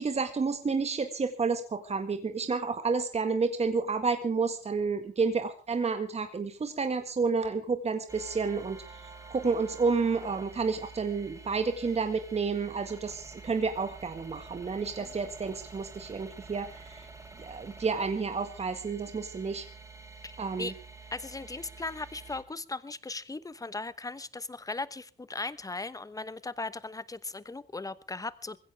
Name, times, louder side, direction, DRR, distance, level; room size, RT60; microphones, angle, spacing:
voice 1, 0.0-8.8 9.3-17.1 17.4-19.6 20.4-20.7, right 4 dB, 30° right, 7 dB, 1.8 m, -30 dB
sound 1, 8.1-22.4, right 4 dB, 15° right, 3.0 m, -48 dB
voice 2, 21.1-28.6, left 3 dB, 15° left, 16 dB, 1.0 m, -38 dB
21.0 x 16.0 x 3.5 m, 0.34 s
cardioid pair, 90°, 20 cm